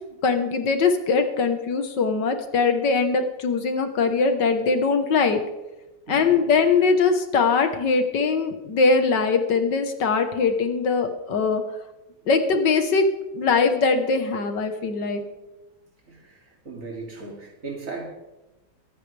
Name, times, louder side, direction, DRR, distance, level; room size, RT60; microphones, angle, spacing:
voice 1, 0.2-5.4 6.1-11.6 12.3-13.1 13.3-15.2, left 4 dB, 70° left, 7 dB, 1.9 m, -21 dB
voice 2, 6.1-6.4 16.0-18.1, right 4 dB, 45° right, -1 dB, 3.1 m, -37 dB
23.0 x 9.7 x 3.4 m, 1.0 s
omnidirectional pair, 2.0 m